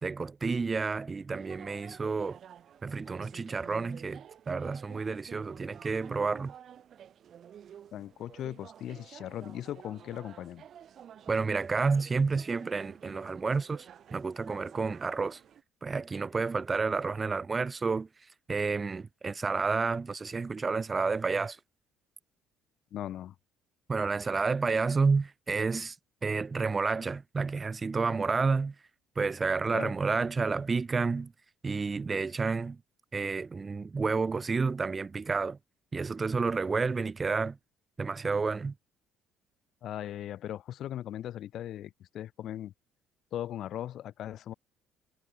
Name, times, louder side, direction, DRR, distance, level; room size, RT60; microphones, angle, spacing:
voice 1, 0.0-2.4 2.8-6.5 11.3-13.9 14.1-15.4 15.8-18.1 18.5-21.6 23.9-26.0 26.2-28.7 29.2-31.3 31.6-32.8 33.1-35.6 35.9-37.6 38.0-38.7, right 4 dB, 20° right, 0.5 m, -30 dB
sound 1, 1.3-15.6, right 9 dB, 45° right, 1.0 m, -51 dB
voice 2, 7.9-10.6 22.9-23.3 29.7-29.9 39.8-42.7 43.3-44.5, left 11 dB, 55° left, 0.5 m, -38 dB
cardioid pair, 130°, 0 cm